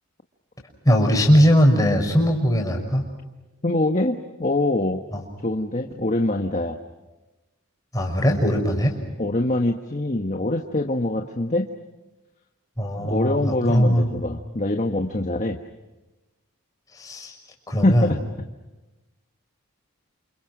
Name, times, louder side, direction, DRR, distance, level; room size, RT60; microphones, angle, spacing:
voice 1, 0.8-3.0 5.1-5.2 7.9-9.0 12.8-14.1 16.9-17.3 17.7-18.1, equal, 15° left, 1 dB, 6.0 m, -20 dB
voice 2, 3.6-5.0 5.4-6.8 9.2-11.7 13.0-15.6 17.8-18.2, left 1 dB, 35° left, 4 dB, 1.4 m, -24 dB
30.0 x 28.0 x 6.2 m, 1.1 s
head